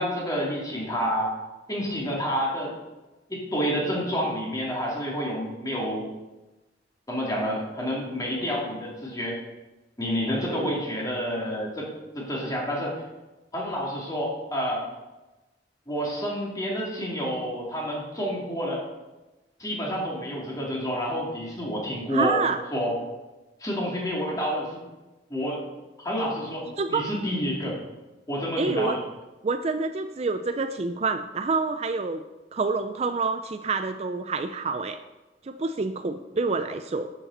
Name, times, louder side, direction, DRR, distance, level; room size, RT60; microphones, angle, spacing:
voice 1, 0.0-1.3 1.7-2.7 3.3-6.1 7.1-9.4 10.0-11.9 12.1-13.0 13.5-14.8 15.9-18.8 19.6-22.4 22.7-22.9 23.6-24.8 25.3-25.6 26.0-27.8 28.3-29.0, equal, 20° left, -4 dB, 2.8 m, -29 dB
voice 2, 10.4-10.8 22.1-22.6 26.8-27.1 28.6-29.0 29.4-32.2 32.5-35.0 35.4-37.1, right 4 dB, 35° right, 8 dB, 0.4 m, -27 dB
12.0 x 7.5 x 4.2 m, 1.1 s
head